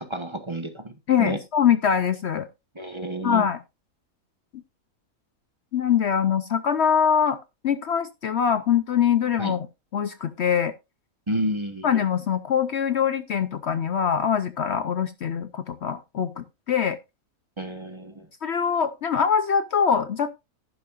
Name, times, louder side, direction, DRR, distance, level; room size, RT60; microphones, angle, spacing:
voice 1, 0.0-0.9 1.2-1.4 2.7-3.5 9.4-9.6 11.3-11.9 17.6-18.3, right 1 dB, 20° right, 8 dB, 1.0 m, -30 dB
voice 2, 1.1-2.5 3.2-3.6 5.7-7.4 7.6-9.7 9.9-10.7 11.8-17.0 18.4-20.3, left 8 dB, 60° left, 12 dB, 0.8 m, -23 dB
11.5 x 10.5 x 2.4 m, 0.23 s
omnidirectional pair, 1.5 m